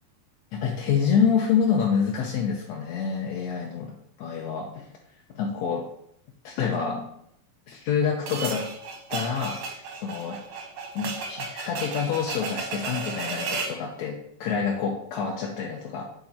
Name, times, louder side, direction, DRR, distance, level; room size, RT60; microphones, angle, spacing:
voice 1, 0.5-3.9 4.2-4.9 5.3-5.8 6.4-7.1 7.7-8.7 9.1-10.4 10.9-16.0, left 6 dB, 75° left, -1 dB, 1.6 m, -27 dB
sound 1, 8.3-13.8, right 4 dB, 75° right, 1.3 m, -34 dB
7.1 x 3.8 x 4.3 m, 0.72 s
omnidirectional pair, 3.8 m